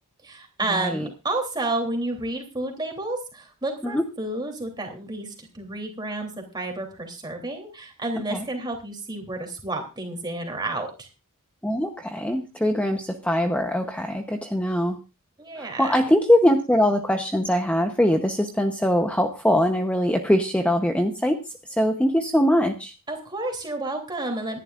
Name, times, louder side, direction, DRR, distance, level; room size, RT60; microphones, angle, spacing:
voice 1, 0.2-11.1 15.4-15.9 23.1-24.6, right 2 dB, 20° right, 3 dB, 3.2 m, -30 dB
voice 2, 11.6-15.0 15.6-21.4 21.8-22.9, equal, 5° left, 5 dB, 0.8 m, -22 dB
26.0 x 11.0 x 2.5 m, 0.28 s
head